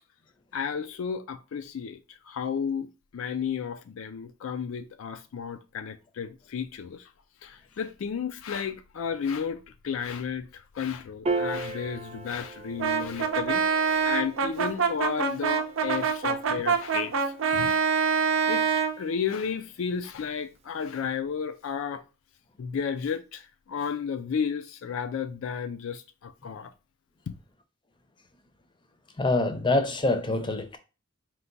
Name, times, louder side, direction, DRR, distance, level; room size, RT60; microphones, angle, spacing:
voice 1, 0.5-2.0 2.3-2.9 3.1-7.1 7.4-17.8 18.5-18.6 19.0-22.0 22.6-26.7 27.3-27.4, left 7 dB, 75° left, 0.4 m, -33 dB
Piano, 11.3-17.9, right 3 dB, 30° right, 0.5 m, -37 dB
Brass instrument, 12.8-19.0, right 6 dB, 75° right, 0.6 m, -25 dB
voice 2, 29.2-30.8, left 2 dB, 25° left, 0.6 m, -25 dB
4.5 x 2.2 x 3.9 m
head